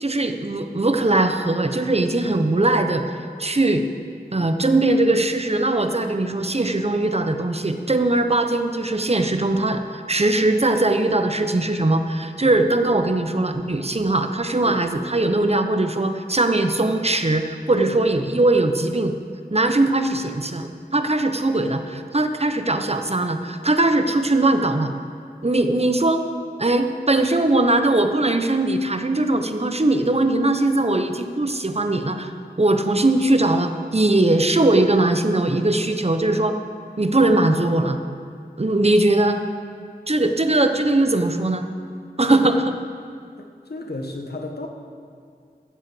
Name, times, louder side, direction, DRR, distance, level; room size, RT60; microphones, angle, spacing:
voice 1, 0.0-3.8 4.3-19.1 19.5-24.9 25.4-26.2 26.6-32.3 32.6-36.6 37.0-38.0 38.6-39.4 40.1-41.7 42.2-42.8, right 2 dB, 40° right, 7 dB, 1.0 m, -20 dB
voice 2, 43.4-44.7, left 2 dB, 70° left, 2 dB, 1.4 m, -33 dB
12.5 x 7.6 x 7.9 m, 2.3 s
wide cardioid pair, 40°, 17 cm